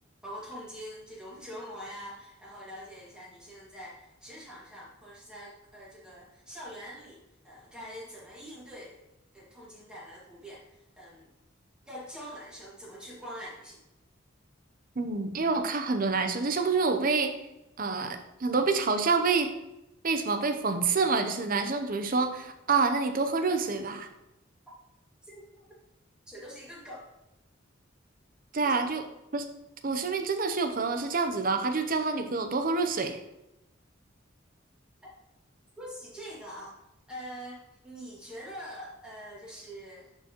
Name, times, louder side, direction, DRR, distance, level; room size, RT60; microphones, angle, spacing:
voice 1, 0.2-9.0 9.3-11.3 11.8-13.8 25.3-25.4 26.3-27.1 28.6-28.7 35.8-36.8 37.1-40.1, equal, 5° right, -6 dB, 2.1 m, -44 dB
voice 2, 15.0-17.3 17.8-19.5 20.0-24.1 28.5-29.0 29.3-29.5 29.8-33.2, right 4 dB, 45° right, 7 dB, 0.7 m, -27 dB
10.5 x 4.6 x 3.0 m, 0.92 s
head